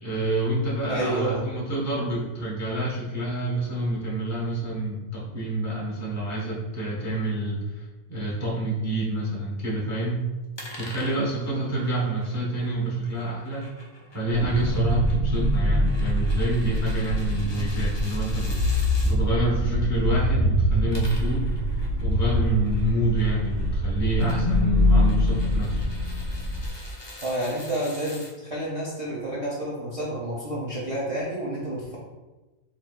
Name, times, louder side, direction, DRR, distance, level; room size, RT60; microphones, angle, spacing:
voice 1, 0.0-10.2 10.8-13.7 14.1-21.5 22.0-25.8, right 1 dB, 15° left, -6 dB, 1.0 m, -27 dB
voice 2, 0.9-1.5 27.2-32.0, right 1 dB, 40° right, -6 dB, 0.5 m, -29 dB
sound 1, 10.6-19.2 20.7-28.3, left 1 dB, 40° left, 0.3 m, -45 dB
sound 2, 14.3-26.7, equal, 65° right, 1.8 m, -24 dB
4.6 x 3.2 x 2.4 m, 1.1 s
omnidirectional pair, 1.5 m